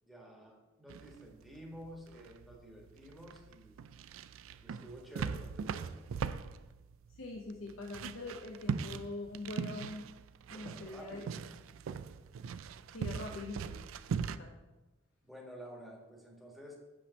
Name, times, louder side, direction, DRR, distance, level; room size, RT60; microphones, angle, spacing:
voice 1, 0.0-3.8 4.6-6.0 10.5-11.3 15.2-16.8, equal, ahead, -2 dB, 1.3 m, -51 dB
sound 1, 0.9-14.4, right 6 dB, 80° right, 0.3 m, -41 dB
voice 2, 7.2-10.1 10.5-11.2 12.9-13.9 14.3-14.6, left 2 dB, 85° left, 0 dB, 0.8 m, -43 dB
8.3 x 3.4 x 6.2 m, 1.1 s
head